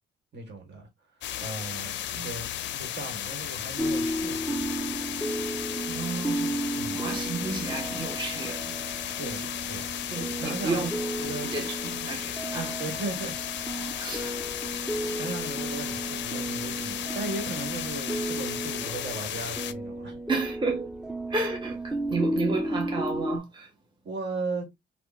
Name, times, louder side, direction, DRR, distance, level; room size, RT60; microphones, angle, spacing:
voice 1, 0.3-0.9 1.4-4.6 6.7-7.0 9.0-9.9 10.4-10.9 11.2-11.5 12.8-13.4 13.9-14.0 14.8-20.2 24.0-24.7, right 3 dB, 60° right, 1.5 m, -37 dB
sound 1, 1.2-19.7, left 11 dB, 65° left, 0.4 m, -35 dB
sound 2, 3.8-23.4, right 1 dB, 5° right, 0.4 m, -33 dB
voice 2, 5.8-6.6 6.9-8.7 10.1-10.9 11.4-12.8 14.0-14.4 20.3-20.9 21.3-23.7, right 3 dB, 25° right, 0.9 m, -32 dB
3.7 x 2.2 x 2.3 m
cardioid pair, 90°, 20 cm